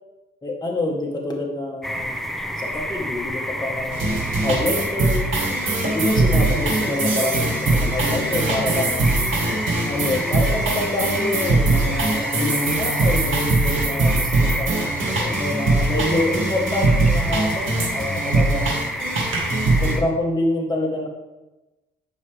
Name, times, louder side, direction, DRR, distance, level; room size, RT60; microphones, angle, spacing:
voice 1, 0.4-2.2 2.6-5.3 5.9-9.1 9.8-18.9 19.8-21.1, left 2 dB, 20° left, 0 dB, 1.2 m, -26 dB
sound 1, 1.8-20.0, equal, ahead, 0.6 m, -29 dB
sound 2, 3.9-19.9, right 2 dB, 80° right, 1.9 m, -22 dB
9.3 x 5.7 x 3.3 m, 1.1 s
cardioid pair, 90°, 20 cm